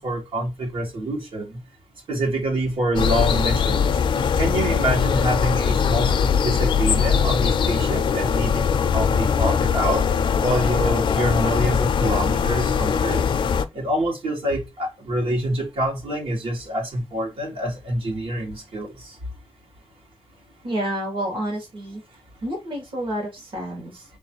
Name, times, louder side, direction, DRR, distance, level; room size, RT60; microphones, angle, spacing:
voice 1, 0.0-1.6 2.1-3.9 4.4-8.7 8.9-10.0 10.4-13.2 13.7-19.2, right 1 dB, 85° right, 1.8 m, -26 dB
sound 1, 3.0-13.6, left 7 dB, 65° left, 0.5 m, -21 dB
voice 2, 20.6-22.0 22.4-24.0, right 1 dB, 65° right, 1.6 m, -29 dB
3.6 x 3.1 x 4.4 m
wide cardioid pair, 170°, 9 cm